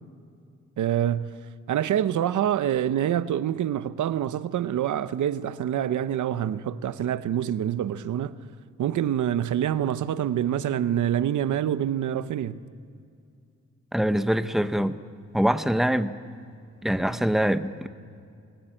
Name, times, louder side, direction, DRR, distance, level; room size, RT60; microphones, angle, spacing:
voice 1, 0.8-1.4 1.7-8.4 8.8-12.6, right 10 dB, 90° right, 0.8 m, -26 dB
voice 2, 13.9-15.0 15.3-16.1 16.8-17.9, equal, ahead, 0.8 m, -24 dB
26.5 x 18.0 x 8.9 m
cardioid pair, 110°, 29 cm